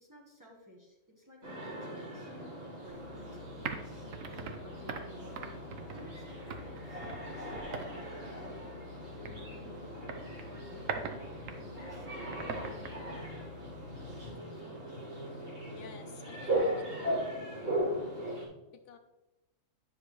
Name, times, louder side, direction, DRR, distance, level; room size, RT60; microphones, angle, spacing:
voice 1, 0.0-2.3 2.8-5.6 5.9-7.1 7.4-9.9 10.4-11.1 11.5-13.3 14.1-14.8, equal, 15° right, -3 dB, 1.3 m, -54 dB
sound 1, 1.4-18.5, right 1 dB, 55° right, 2.4 m, -39 dB
sound 2, 2.9-14.3, right 3 dB, 90° right, 1.2 m, -44 dB
voice 2, 15.7-17.2 18.7-19.0, left 6 dB, 70° left, 6 dB, 0.9 m, -49 dB
9.8 x 5.9 x 3.1 m, 1.0 s
omnidirectional pair, 1.3 m